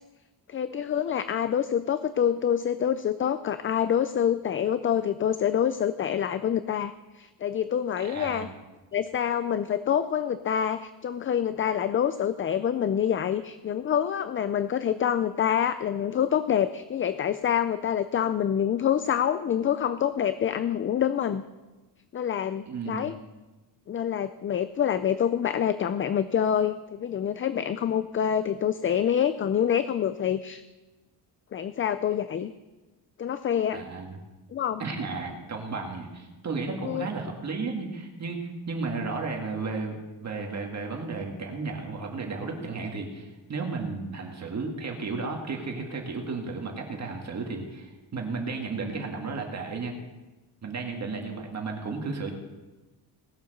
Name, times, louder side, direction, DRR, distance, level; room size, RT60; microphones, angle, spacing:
voice 1, 0.5-8.5 8.9-21.4 22.1-23.2 23.9-30.6 31.5-32.5 33.2-33.8 34.5-34.8 36.8-37.1, left 9 dB, 30° left, 12 dB, 0.4 m, -26 dB
voice 2, 8.0-8.5 22.7-23.1 33.7-34.2 34.8-49.9 50.6-52.3, right 4 dB, 40° right, 1 dB, 1.9 m, -33 dB
19.0 x 7.1 x 6.6 m, 1.2 s
cardioid pair, 155°, 42 cm